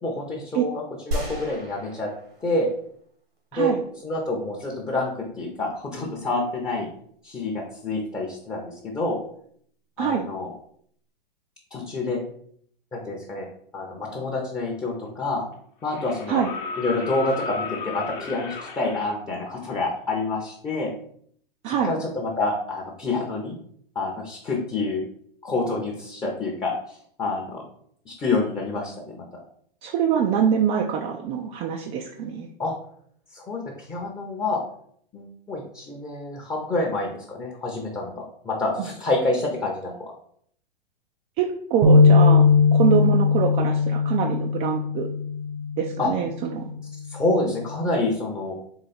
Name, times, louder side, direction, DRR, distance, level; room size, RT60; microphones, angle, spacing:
voice 1, 0.0-2.1 2.4-2.7 3.5-3.7 4.0-6.9 7.2-9.2 10.0-10.5 11.7-12.2 12.9-13.5 13.7-15.5 15.8-16.4 16.8-20.9 21.7-23.6 23.9-25.1 25.4-27.6 28.1-29.2 32.6-32.7 33.3-34.6 35.1-40.1 46.0-46.1 47.1-48.6, left 2 dB, 15° left, -2 dB, 0.8 m, -27 dB
sound 1, 1.1-2.9 3.4-3.5, equal, 85° right, 1.6 m, -33 dB
sound 2, 14.7-14.8 15.8-19.1 20.8-20.9, left 4 dB, 40° left, 1.0 m, -34 dB
voice 2, 29.8-32.5 41.4-42.4 42.7-45.1 45.8-46.7, right 8 dB, 25° right, 1 dB, 0.4 m, -24 dB
sound 3, 41.8-46.1 46.6-46.8 47.6-48.1, left 4 dB, 65° right, 0.9 m, -19 dB
4.0 x 3.0 x 4.2 m, 0.64 s
hypercardioid pair, 110°, 29 cm